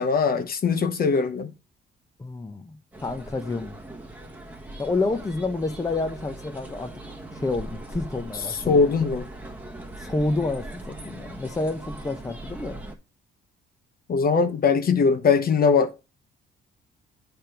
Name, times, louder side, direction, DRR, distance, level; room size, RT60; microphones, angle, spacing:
voice 1, 0.0-1.5 8.7-9.3 14.1-16.1, left 5 dB, 50° left, 0.9 m, -21 dB
voice 2, 2.2-2.8 3.0-3.8 4.8-6.9 7.3-9.1 10.0-12.8, left 3 dB, 15° left, 0.8 m, -29 dB
sound 1, 2.9-12.9, right 1 dB, 10° right, 1.4 m, -40 dB
8.7 x 3.5 x 5.8 m
cardioid pair, 90°, 20 cm